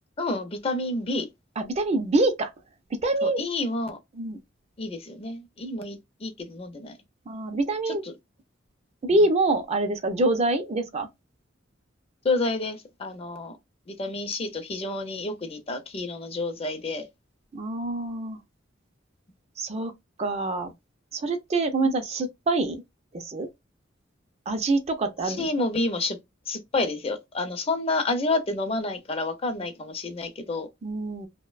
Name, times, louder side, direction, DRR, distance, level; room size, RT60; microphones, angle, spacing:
voice 1, 0.2-1.3 3.2-4.0 4.8-7.0 7.9-8.1 12.2-13.6 13.9-17.1 25.2-26.2 26.5-30.7, left 2 dB, 30° left, 0.5 m, -29 dB
voice 2, 1.6-2.5 3.0-3.4 4.2-4.4 7.3-8.0 9.0-11.1 17.5-18.4 19.6-19.9 20.2-20.7 21.1-22.8 23.1-23.5 24.5-25.5 30.8-31.3, right 2 dB, 35° right, 0.4 m, -25 dB
2.6 x 2.1 x 2.3 m
head